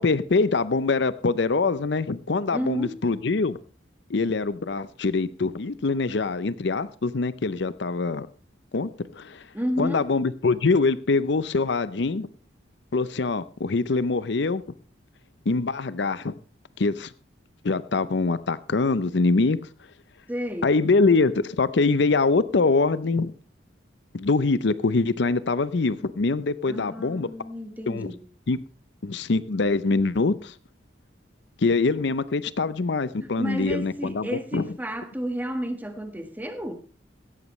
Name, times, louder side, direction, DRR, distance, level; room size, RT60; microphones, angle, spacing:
voice 1, 0.0-3.6 4.1-8.3 8.7-9.5 9.8-12.3 12.9-14.6 15.5-16.3 16.8-17.1 17.6-19.6 20.6-23.3 24.1-27.3 27.9-28.1 28.5-28.6 29.0-30.5 31.6-34.7, left 3 dB, 65° left, 0.6 m, -24 dB
voice 2, 2.5-3.0 9.5-10.1 20.3-20.7 26.6-28.2 33.2-36.7, equal, 10° right, 1.5 m, -31 dB
16.5 x 13.5 x 3.1 m
head